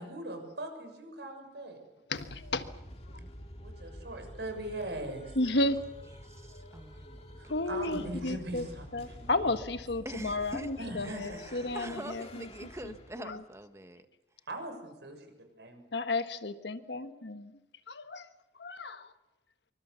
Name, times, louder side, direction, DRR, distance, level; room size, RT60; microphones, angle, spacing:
voice 1, 0.0-1.8 3.6-5.4 7.4-9.3 10.8-11.7 14.5-15.3 15.6-15.8, right 1 dB, 70° right, 5 dB, 6.7 m, -40 dB
voice 2, 2.1-2.7 3.1-3.2 5.3-5.8 6.5-6.7 7.5-8.6 8.9-12.9 13.2-13.4 15.9-17.5 17.9-18.3 18.6-19.1, left 2 dB, 75° left, 9 dB, 1.5 m, -33 dB
sound 1, 2.1-13.5, equal, 35° left, 2.4 m, -49 dB
voice 3, 6.2-7.5 10.0-10.7 11.0-14.1, right 1 dB, 15° right, 8 dB, 1.4 m, -45 dB
26.5 x 24.5 x 6.9 m, 0.99 s
head